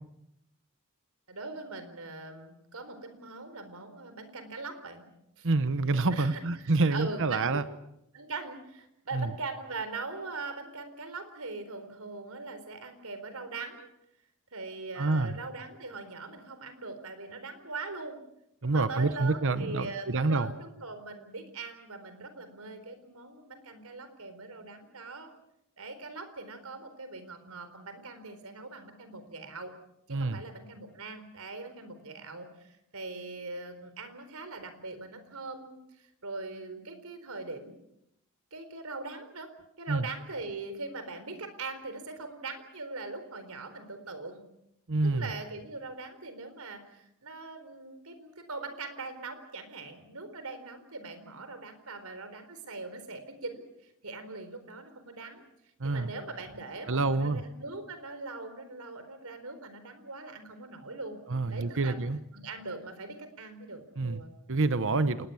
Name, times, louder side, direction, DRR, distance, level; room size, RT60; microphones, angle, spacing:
voice 1, 1.3-5.0 5.4-5.5 6.1-7.6 8.1-13.9 14.5-18.2 18.6-25.3 25.8-29.7 30.1-37.8 38.5-39.5 39.8-44.4 45.0-55.4 55.8-61.2 61.5-62.0 62.3-64.4, right 3 dB, 90° right, 10 dB, 4.2 m, -41 dB
voice 2, 5.4-7.6 9.1-9.3 15.0-15.3 18.6-20.5 30.1-30.4 39.9-40.1 44.9-45.3 55.8-56.1 56.9-57.4 61.3-62.2 64.0-64.2 64.5-65.3, right 3 dB, 65° right, 12 dB, 1.0 m, -27 dB
27.5 x 20.0 x 7.1 m, 0.80 s
head